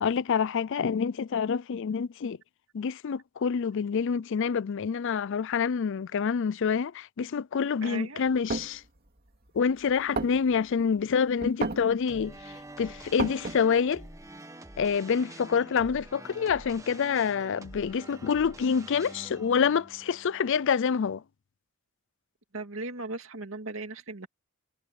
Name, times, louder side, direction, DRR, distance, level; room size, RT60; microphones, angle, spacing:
voice 1, 0.0-2.4 2.7-8.8 9.5-14.1 14.8-21.2, left 6 dB, 65° left, 0.4 m, -27 dB
voice 2, 7.8-8.2 22.5-24.3, right 3 dB, 70° right, 2.3 m, -37 dB
sound 1, 8.3-8.8 9.5-9.6 9.9-10.0 10.2-10.8 11.4-11.9 12.4-12.5 12.7-13.8, right 3 dB, 50° right, 2.6 m, -32 dB
sound 2, 12.1-21.2, right 1 dB, 15° right, 1.7 m, -47 dB
head